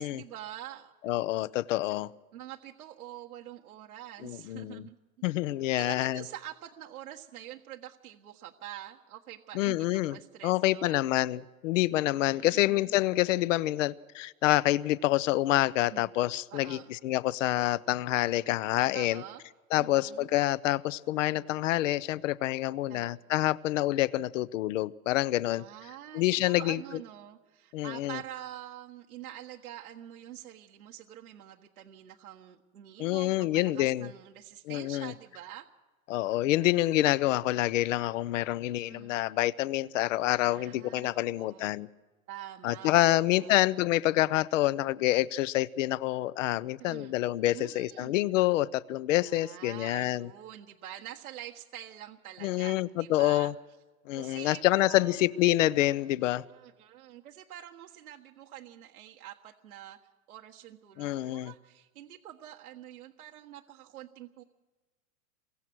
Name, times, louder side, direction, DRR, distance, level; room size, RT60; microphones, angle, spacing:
voice 1, 0.0-0.9 1.9-5.0 5.8-11.1 12.1-13.0 15.9-16.1 16.5-16.9 18.9-19.4 19.8-20.3 22.9-23.1 25.5-35.7 38.8-39.1 40.3-41.8 42.3-43.6 46.8-47.2 47.5-48.1 49.2-53.5 54.1-55.2 56.5-60.0 60.3-64.4, right 12 dB, 80° right, 1.6 m, -46 dB
voice 2, 1.0-2.1 4.2-4.8 5.2-6.2 9.5-10.2 10.4-19.2 19.7-25.6 26.1-26.8 27.7-28.2 33.0-34.1 34.7-35.1 36.1-41.9 42.6-50.3 52.4-53.5 54.1-56.4 61.0-61.5, left 15 dB, 60° left, 0.9 m, -27 dB
28.0 x 23.0 x 6.3 m
hypercardioid pair, 115°, 43 cm